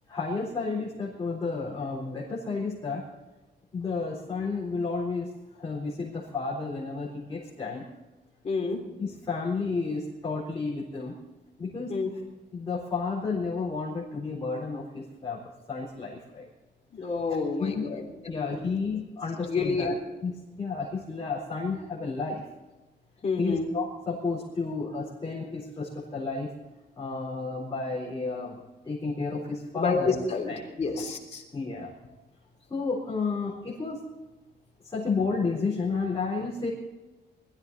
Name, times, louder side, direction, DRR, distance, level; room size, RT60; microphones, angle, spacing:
voice 1, 0.1-3.0 3.7-5.3 5.6-7.8 9.0-11.1 11.6-11.9 12.5-15.4 15.7-16.5 17.6-17.9 18.3-19.9 20.2-20.3 20.6-22.4 23.4-26.5 27.0-30.6 31.5-31.9 32.7-34.0 34.9-36.7, left 4 dB, 20° left, -7 dB, 4.1 m, -31 dB
voice 2, 8.4-8.8 11.9-12.1 16.9-18.5 19.5-19.9 23.2-23.7 29.7-31.4, left 4 dB, 35° left, 0 dB, 3.1 m, -29 dB
21.0 x 14.0 x 4.1 m, 1.1 s
wide cardioid pair, 170°, 18 cm